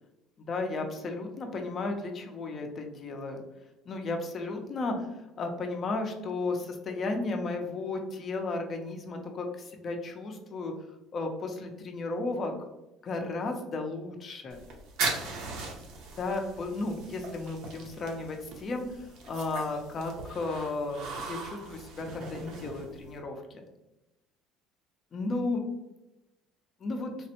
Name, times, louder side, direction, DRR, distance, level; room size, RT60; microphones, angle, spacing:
voice 1, 0.5-3.4 3.9-5.0 5.4-10.7 11.1-12.7 13.0-14.6 16.2-23.4 25.1-25.6 26.8-27.1, left 3 dB, 30° left, 3 dB, 0.4 m, -34 dB
sound 1, 14.5-23.2, right 4 dB, 60° right, 0.6 m, -39 dB
3.4 x 2.0 x 2.8 m, 0.98 s
cardioid pair, 160°, 0 cm